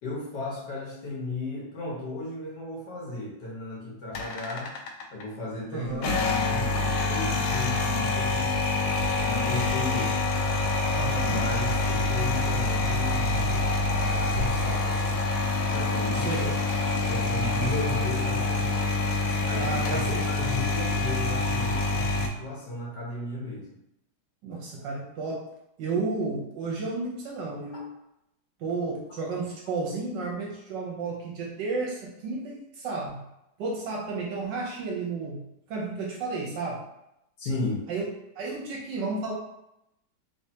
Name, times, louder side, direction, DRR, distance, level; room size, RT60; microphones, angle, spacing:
voice 1, 0.0-4.7 5.1-8.5 9.2-10.2 11.2-15.2 15.7-16.6 16.9-18.9 19.5-23.7 27.7-27.8 37.4-37.8, left 2 dB, 60° left, -4 dB, 1.4 m, -35 dB
sound 1, 4.1-5.2 5.9-22.3, left 2 dB, 85° left, 1.5 m, -26 dB
voice 2, 5.7-6.2 10.9-11.4 16.1-16.5 17.6-17.9 19.6-20.1 24.4-25.5 25.8-27.8 28.6-33.2 33.6-36.8 37.9-38.1 38.4-39.3, right 3 dB, 70° right, -2 dB, 1.2 m, -32 dB
3.4 x 3.2 x 2.7 m, 0.85 s
omnidirectional pair, 2.3 m